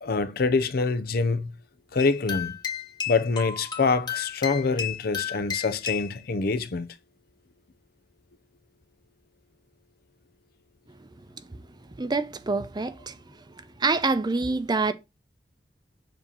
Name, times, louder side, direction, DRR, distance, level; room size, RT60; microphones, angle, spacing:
voice 1, 0.0-1.5 1.9-2.6 3.1-6.9, left 4 dB, 60° left, 0.6 m, -25 dB
sound 1, 2.0-6.2, left 8 dB, 25° left, 1.1 m, -33 dB
voice 2, 12.0-13.2 13.8-14.9, right 3 dB, 25° right, 0.6 m, -26 dB
7.2 x 2.9 x 5.3 m
head